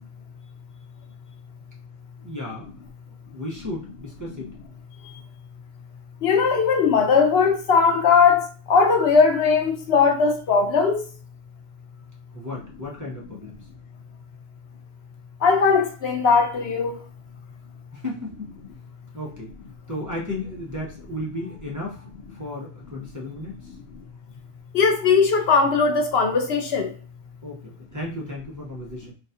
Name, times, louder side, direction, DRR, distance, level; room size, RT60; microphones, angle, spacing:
voice 1, 2.2-2.7 3.3-4.5 12.3-13.6 17.9-18.5 19.1-19.5 19.9-22.0 22.3-23.6 27.4-29.1, left 1 dB, 20° right, 0.8 m, -34 dB
voice 2, 6.2-11.0 15.4-16.9 24.7-26.9, left 5 dB, 70° left, 0.9 m, -19 dB
4.1 x 2.3 x 2.7 m
omnidirectional pair, 1.1 m